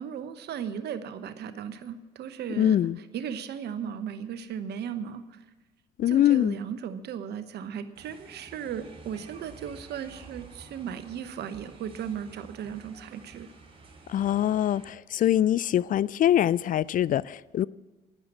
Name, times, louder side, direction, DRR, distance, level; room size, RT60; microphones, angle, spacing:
voice 1, 0.0-2.8 3.1-5.2 6.1-13.5, right 8 dB, 60° right, 1.0 m, -36 dB
voice 2, 2.6-3.0 6.0-6.6 14.1-17.7, left 11 dB, 45° left, 0.4 m, -23 dB
sound 1, 8.0-14.9, right 3 dB, 30° right, 4.3 m, -50 dB
11.5 x 10.0 x 7.5 m
hypercardioid pair, 50°, 20 cm